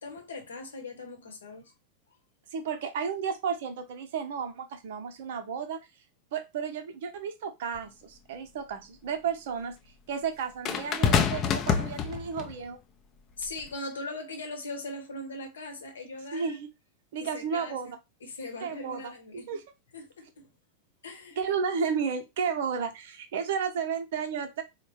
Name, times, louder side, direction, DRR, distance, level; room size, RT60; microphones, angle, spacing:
voice 1, 0.0-1.7 13.4-16.6 17.2-17.9 18.2-19.5 19.9-20.5 21.0-21.5, left 2 dB, 70° left, 0.9 m, -40 dB
voice 2, 2.5-5.9 6.3-9.8 10.1-12.8 16.3-16.7 17.1-18.0 18.6-19.6 21.4-24.6, right 6 dB, 55° right, 0.7 m, -33 dB
sound 1, 7.7-7.8 10.6-12.5 13.5-13.7, left 7 dB, 30° left, 0.5 m, -26 dB
3.5 x 2.1 x 3.0 m
figure-of-eight pair, 90°, 0 cm